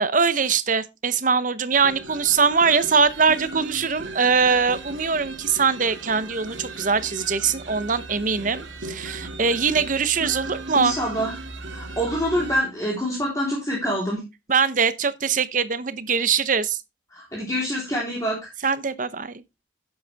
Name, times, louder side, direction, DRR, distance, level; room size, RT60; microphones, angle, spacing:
voice 1, 0.0-10.9 14.5-16.8 18.6-19.4, right 5 dB, 40° right, 0.8 m, -22 dB
sound 1, 1.7-12.6, right 2 dB, 75° right, 2.2 m, -37 dB
voice 2, 10.7-11.3 11.7-14.2 17.1-18.5, equal, 15° left, 3.6 m, -26 dB
11.0 x 8.0 x 3.4 m
head